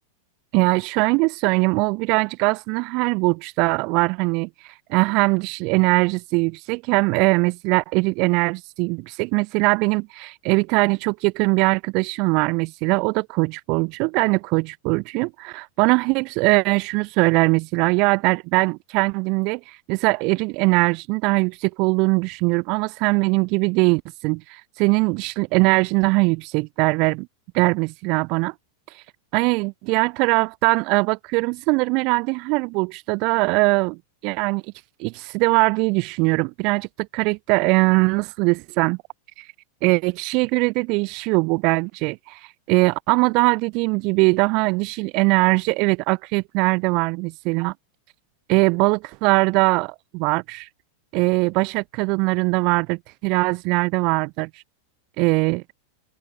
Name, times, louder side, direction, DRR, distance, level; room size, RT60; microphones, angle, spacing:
voice 1, 0.5-27.3 27.5-28.5 28.9-29.0 29.3-34.0 34.2-34.6 35.0-36.9 37.1-39.0 39.4-39.5 39.8-47.7 48.5-50.7 51.1-54.5 55.2-55.6, right 28 dB, 45° right, 2.6 m, -21 dB
open air
figure-of-eight pair, 90°, 0 cm